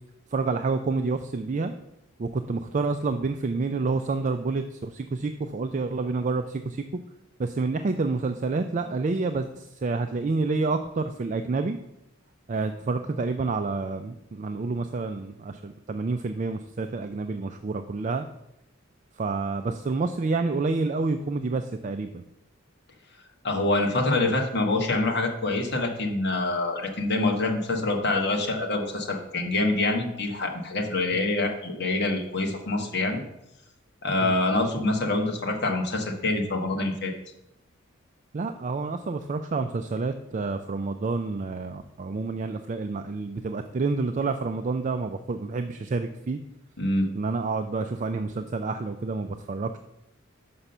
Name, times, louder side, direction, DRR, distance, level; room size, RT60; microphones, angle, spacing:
voice 1, 0.3-1.7 2.2-7.0 7.4-11.8 12.5-18.3 19.2-22.2 31.1-31.2 34.2-34.3 38.3-46.4 47.1-49.8, right 3 dB, 35° right, 7 dB, 0.4 m, -28 dB
voice 2, 23.4-33.2 34.0-37.1 46.8-47.1, left 2 dB, 55° left, 2 dB, 1.3 m, -26 dB
6.0 x 5.6 x 6.6 m, 0.84 s
head